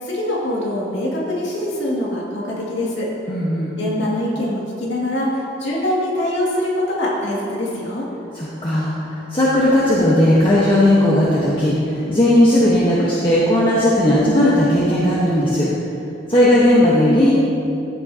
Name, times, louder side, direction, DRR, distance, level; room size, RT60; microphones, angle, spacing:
voice 1, 0.0-3.1 3.8-5.3 5.6-8.1, left 1 dB, 85° left, -5 dB, 2.2 m, -23 dB
voice 2, 3.3-3.7 8.3-15.7 16.3-17.3, left 1 dB, 30° left, -7 dB, 1.2 m, -16 dB
14.0 x 7.6 x 2.8 m, 2.7 s
head